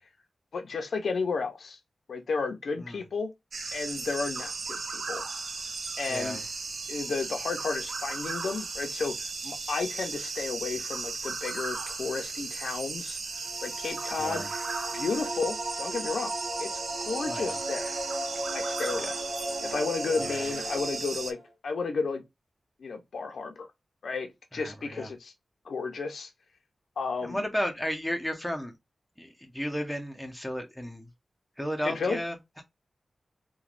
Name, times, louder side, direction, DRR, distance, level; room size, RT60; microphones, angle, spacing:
voice 1, 0.5-1.8 2.1-3.3 3.7-5.2 6.0-6.5 6.9-13.2 13.6-14.4 14.9-16.7 17.0-17.9 18.5-19.2 19.6-21.4 21.6-22.2 22.8-23.7 24.0-25.3 25.7-26.3 27.0-27.4 31.8-32.2, left 4 dB, 75° left, 0.6 m, -32 dB
sound 1, 3.5-21.3, right 4 dB, 60° right, 0.4 m, -36 dB
voice 2, 6.1-6.4 14.2-14.5 17.3-17.6 20.2-20.4 24.5-25.1 27.2-28.7 29.2-31.1 31.6-32.3, equal, ahead, 0.6 m, -33 dB
sound 2, 13.3-21.5, right 1 dB, 75° right, 0.9 m, -36 dB
3.0 x 2.2 x 2.4 m
wide cardioid pair, 165°, 0 cm